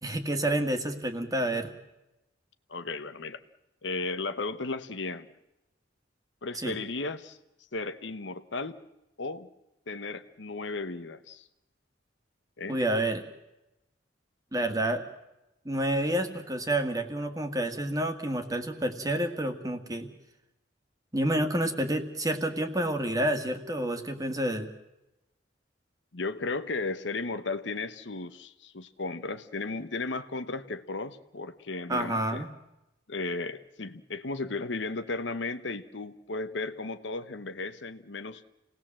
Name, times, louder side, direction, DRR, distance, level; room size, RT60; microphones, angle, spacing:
voice 1, 0.0-1.7 6.6-6.8 12.7-13.3 14.5-15.0 15.7-20.1 21.1-24.7 31.9-32.5, right 1 dB, 20° right, 7 dB, 1.9 m, -29 dB
voice 2, 2.7-3.4 3.8-5.3 6.4-7.4 7.7-8.8 9.2-9.5 9.9-11.4 12.6-12.8 26.1-32.4 33.1-38.4, left 3 dB, 70° left, 11 dB, 1.1 m, -35 dB
28.0 x 18.5 x 7.6 m, 0.94 s
head